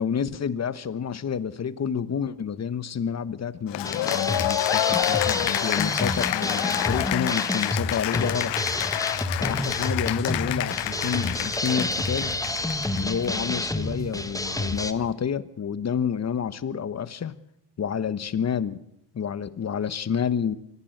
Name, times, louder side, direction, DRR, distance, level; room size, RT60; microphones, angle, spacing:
voice 1, 0.0-8.5 9.4-12.4 12.9-17.3 17.8-18.8 19.1-20.5, left 7 dB, 35° left, 16 dB, 1.1 m, -29 dB
Cheering / Applause, 3.7-13.3, left 15 dB, 80° left, 0.9 m, -28 dB
sound 1, 3.8-14.9, left 1 dB, 10° left, 1.3 m, -29 dB
sound 2, 9.1-15.1, right 4 dB, 40° right, 3.9 m, -42 dB
23.5 x 15.5 x 7.9 m, 0.78 s
cardioid pair, 110°, 43 cm